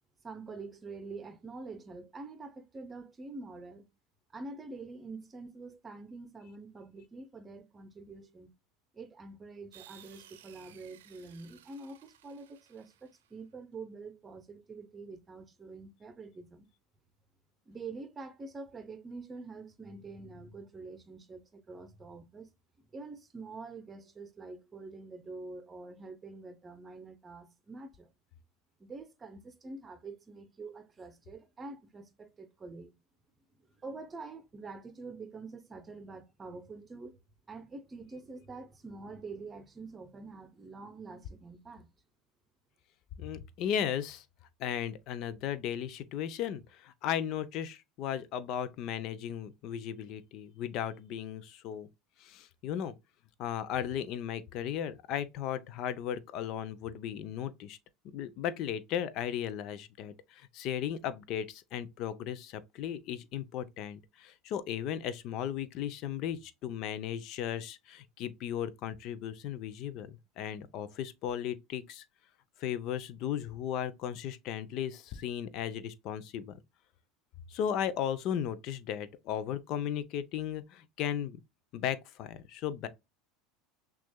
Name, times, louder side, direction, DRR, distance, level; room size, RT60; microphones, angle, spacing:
voice 1, 0.2-3.9 4.3-8.5 8.9-16.7 17.7-22.5 22.8-28.1 28.8-32.9 33.8-37.2 37.5-41.9, right 3 dB, 25° right, 0.8 m, -46 dB
sound 1, 9.7-13.4, right 11 dB, 80° right, 0.6 m, -58 dB
voice 2, 43.2-44.2 44.6-51.9 52.2-52.9 53.4-57.8 58.0-72.0 72.6-76.6 77.5-81.4 81.7-82.9, left 9 dB, 55° left, 0.6 m, -36 dB
6.0 x 2.4 x 2.2 m
hypercardioid pair, 95°, 0 cm